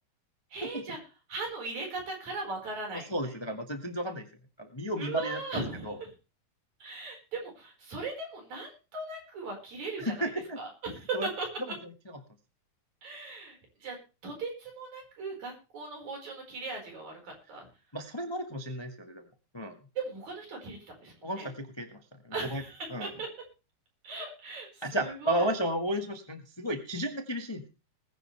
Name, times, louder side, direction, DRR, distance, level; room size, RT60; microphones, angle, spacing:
voice 1, 0.5-1.0 1.3-3.3 5.0-6.1 6.8-11.5 13.0-14.0 14.2-17.7 20.0-21.5 22.3-23.3 24.0-25.5, right 3 dB, 75° right, 2 dB, 6.3 m, -38 dB
voice 2, 3.1-4.3 4.6-6.0 10.0-10.6 11.1-11.3 17.9-19.3 19.5-19.8 21.2-22.6 22.9-23.1 24.8-27.7, right 1 dB, 20° left, 6 dB, 0.7 m, -33 dB
20.0 x 10.5 x 3.3 m, 0.32 s
omnidirectional pair, 3.3 m